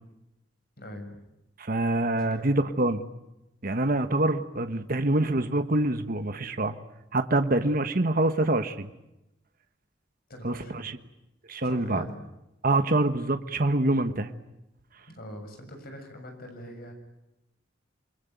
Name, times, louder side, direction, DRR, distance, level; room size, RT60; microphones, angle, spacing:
voice 1, 0.8-1.1 2.1-2.5 10.3-10.9 11.6-12.2 15.1-16.9, equal, 50° left, 5 dB, 7.2 m, -42 dB
voice 2, 1.6-3.1 3.6-6.8 7.1-8.9 10.4-10.6 10.8-11.0 11.5-12.0 12.6-14.3, right 2 dB, 50° right, 8 dB, 1.3 m, -25 dB
28.5 x 22.0 x 9.3 m, 0.91 s
head